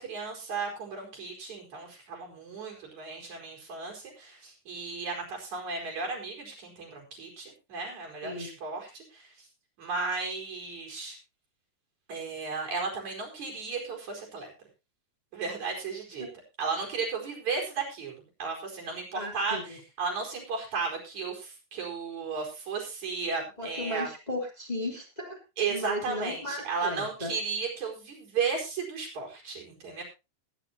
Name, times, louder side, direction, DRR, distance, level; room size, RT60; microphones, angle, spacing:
voice 1, 0.0-9.3 9.8-11.2 12.1-14.5 15.3-16.3 16.6-24.1 25.6-30.0, right 4 dB, 65° right, 0 dB, 5.9 m, -34 dB
voice 2, 19.1-19.6 23.6-25.4 25.7-27.3, left 1 dB, 15° left, 0 dB, 3.5 m, -35 dB
20.5 x 10.0 x 2.9 m, 0.28 s
omnidirectional pair, 3.5 m